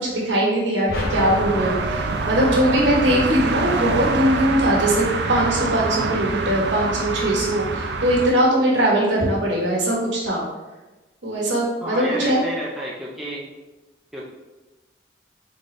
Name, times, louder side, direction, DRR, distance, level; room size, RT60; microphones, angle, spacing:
voice 1, 0.0-10.4 11.2-12.4, right 1 dB, 80° right, -3 dB, 1.3 m, -21 dB
sound 1, 0.9-3.3, left 1 dB, 55° left, 0.9 m, -32 dB
sound 2, 1.1-8.3, right 3 dB, 65° right, 0.4 m, -25 dB
voice 2, 11.8-13.5 14.1-14.2, equal, ahead, -6 dB, 0.6 m, -30 dB
3.9 x 3.8 x 3.2 m, 1.1 s
head